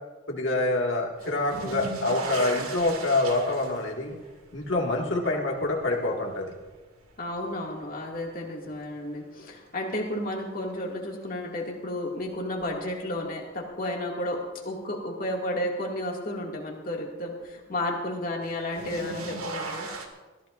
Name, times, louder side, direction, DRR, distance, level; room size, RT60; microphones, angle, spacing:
voice 1, 0.3-4.2 4.5-6.5, left 2 dB, 55° left, -1 dB, 2.0 m, -26 dB
sound 1, 1.2-8.2 8.7-9.3 10.9-11.0 12.6-12.7 18.4-20.1, right 3 dB, 85° right, 1.9 m, -38 dB
voice 2, 7.2-19.9, left 1 dB, 40° left, -1 dB, 2.2 m, -32 dB
22.5 x 14.5 x 2.6 m, 1.2 s
head